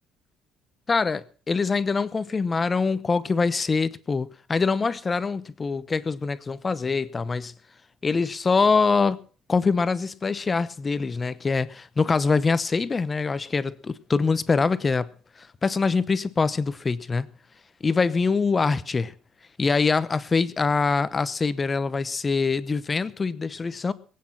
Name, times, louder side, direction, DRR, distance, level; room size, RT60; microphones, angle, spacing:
voice 1, 0.9-7.5 8.0-9.2 9.5-15.1 15.4-17.3 17.8-19.1 19.6-23.9, left 4 dB, 20° left, 0.9 m, -24 dB
21.5 x 8.6 x 5.9 m
cardioid pair, 145°, 0 cm